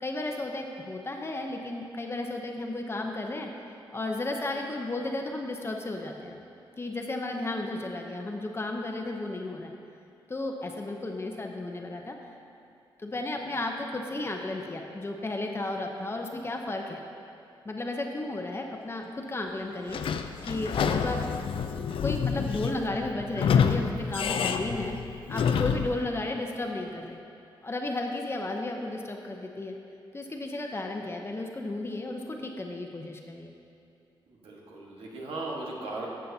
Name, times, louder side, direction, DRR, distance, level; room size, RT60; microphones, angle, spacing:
voice 1, 0.0-3.5 3.9-6.4 6.8-9.7 10.3-12.2 13.0-17.0 17.6-20.0 20.4-21.2 21.7-24.9 25.3-27.2 27.6-29.8 30.1-33.5, left 2 dB, 25° left, 2 dB, 0.7 m, -34 dB
Sliding door / Squeak, 19.9-26.0, left 7 dB, 75° left, 0.4 m, -28 dB
voice 2, 34.3-36.1, right 2 dB, 90° right, -3 dB, 1.5 m, -37 dB
12.5 x 7.4 x 2.8 m, 2.6 s
cardioid pair, 95°, 9 cm